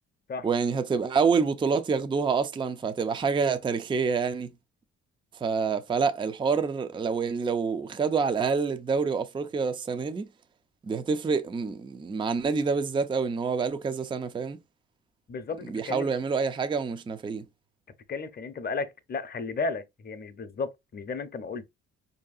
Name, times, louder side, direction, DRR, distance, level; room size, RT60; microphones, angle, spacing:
voice 1, 0.4-4.5 5.4-10.3 10.8-14.6 15.7-17.4, right 5 dB, 15° right, 0.4 m, -27 dB
voice 2, 15.3-16.1 18.1-21.6, left 4 dB, 30° left, 0.7 m, -34 dB
4.6 x 2.7 x 2.4 m
cardioid pair, 90°, 30 cm